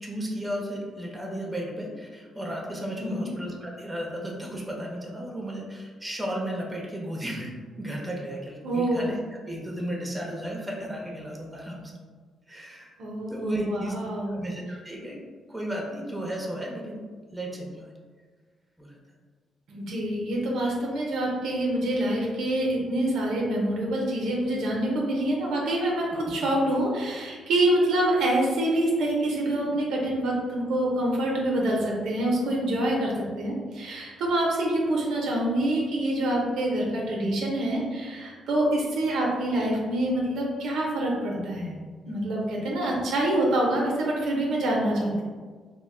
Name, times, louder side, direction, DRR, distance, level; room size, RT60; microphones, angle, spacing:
voice 1, 0.0-9.2 9.5-11.9 12.5-12.9 13.3-13.9 14.3-15.2 15.5-17.0 17.3-17.9 18.8-19.0, equal, 10° right, -1 dB, 0.7 m, -34 dB
voice 2, 8.6-9.1 13.0-14.4 19.7-41.7 42.1-45.2, right 1 dB, 80° right, -2 dB, 0.6 m, -26 dB
2.5 x 2.1 x 3.6 m, 1.5 s
supercardioid pair, 65°, 0 cm